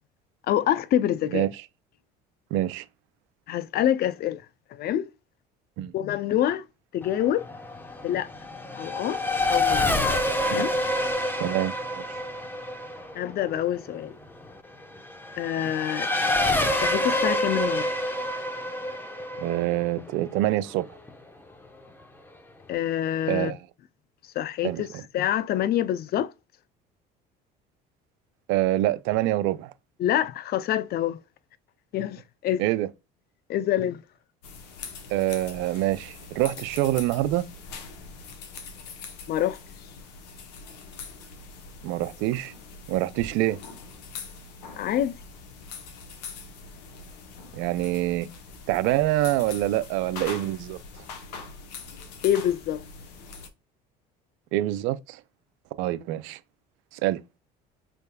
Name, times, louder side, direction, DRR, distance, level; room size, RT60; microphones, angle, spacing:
voice 1, 0.5-1.5 3.5-4.4 4.7-5.1 5.9-6.7 6.9-7.5 8.0-8.3 8.8-9.2 9.5-9.9 10.4-10.8 13.1-14.1 15.4-16.1 16.8-17.9 22.7-23.5 24.4-24.9 25.1-26.3 30.0-31.2 31.9-32.6 33.5-34.0 39.3-39.6 44.8-45.2 52.2-52.8, left 11 dB, 50° left, 0.5 m, -26 dB
voice 2, 2.5-2.8 5.8-5.9 10.5-10.7 11.4-12.0 19.4-20.9 23.3-23.6 24.6-25.0 28.5-29.7 32.6-32.9 35.1-37.4 41.8-42.5 42.9-43.6 47.5-48.3 48.7-50.8 54.5-55.2 55.8-56.4 56.9-57.2, right 15 dB, 75° right, 0.5 m, -26 dB
Race car auto racing / Accelerating revving vroom, 7.0-21.1, left 1 dB, 10° left, 0.9 m, -28 dB
sound 1, 34.4-53.5, left 4 dB, 90° left, 0.9 m, -42 dB
5.2 x 3.5 x 2.2 m
supercardioid pair, 80°, 21 cm